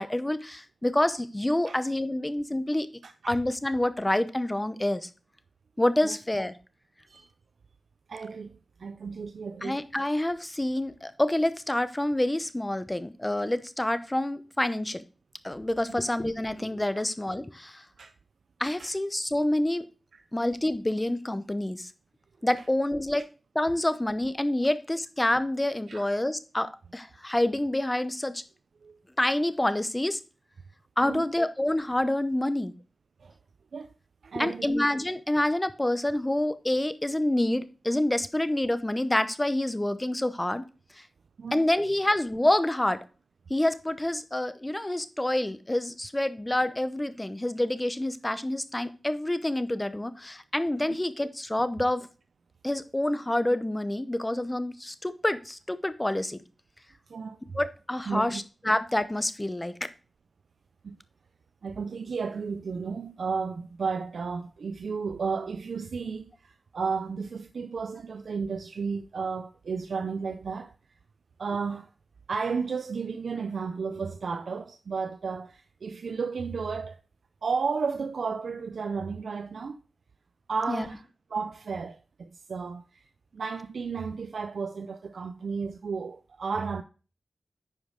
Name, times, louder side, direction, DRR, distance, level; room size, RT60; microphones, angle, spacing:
voice 1, 0.0-2.9 3.3-5.1 5.8-6.5 9.6-15.0 15.4-17.8 18.6-19.8 20.3-21.9 22.4-23.2 23.5-28.4 29.2-30.2 31.0-32.7 34.4-40.6 41.5-43.0 43.5-52.1 52.6-56.4 57.5-59.7 80.7-80.9, left 1 dB, 15° left, 0.7 m, -27 dB
voice 2, 3.0-3.4 6.0-6.2 7.1-7.3 8.1-9.8 15.9-16.0 16.9-17.1 18.0-18.1 18.8-18.9 20.1-20.2 25.9-26.0 28.8-29.0 31.0-31.3 33.2-33.3 33.7-33.9 34.2-34.7 41.4-41.7 50.9-51.0 57.1-57.4 58.1-58.4 60.8-61.0 61.6-70.7 71.4-71.9 72.3-77.0 77.4-79.8 80.5-83.0 83.3-86.8, right 5 dB, 85° right, 0.4 m, -33 dB
9.7 x 5.1 x 3.8 m
wide cardioid pair, 75°, 0 cm